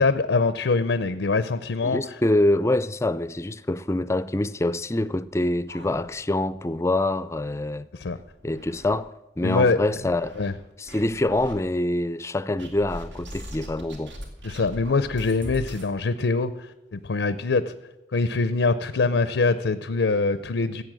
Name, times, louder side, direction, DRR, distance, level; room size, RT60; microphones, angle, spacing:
voice 1, 0.0-2.0 7.9-8.2 9.4-9.8 10.4-10.5 14.4-17.7 18.1-20.8, left 3 dB, 90° left, 0.6 m, -23 dB
voice 2, 1.8-7.9 8.4-10.3 10.8-14.1, left 1 dB, 15° left, 0.4 m, -25 dB
sound 1, 5.7-6.5 6.9-7.0 7.3-7.4 8.0-9.0 9.5-10.5 10.9-11.5 12.6-15.9, equal, 85° right, 2.6 m, -41 dB
15.5 x 8.2 x 7.5 m
head